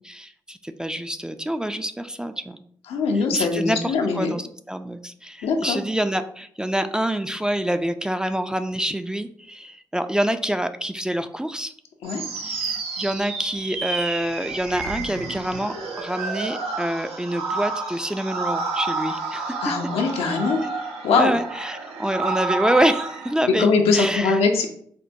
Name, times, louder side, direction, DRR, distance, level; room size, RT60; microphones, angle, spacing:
voice 1, 0.0-2.6 3.1-11.7 12.4-19.7 20.6-20.7 21.2-23.7 23.9-24.4, right 1 dB, 10° right, 9 dB, 0.3 m, -26 dB
voice 2, 2.9-4.3 5.4-5.8 12.0-12.2 19.6-20.6 21.0-21.3 23.6-24.7, left 4 dB, 80° left, 3 dB, 0.5 m, -21 dB
sound 1, 12.0-23.3, right 4 dB, 80° right, 0.5 m, -30 dB
4.4 x 2.1 x 2.6 m, 0.64 s
hypercardioid pair, 40°, 10 cm